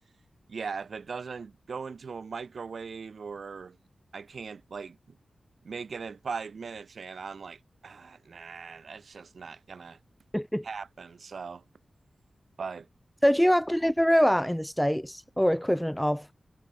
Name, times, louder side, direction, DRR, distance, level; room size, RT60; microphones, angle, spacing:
voice 1, 0.5-3.8 4.1-5.2 5.6-10.0 10.6-11.6 12.6-12.9, right 5 dB, 60° right, 7.1 m, -39 dB
voice 2, 10.3-10.6 13.2-16.3, equal, ahead, 1.2 m, -24 dB
wide cardioid pair, 170°, 0 cm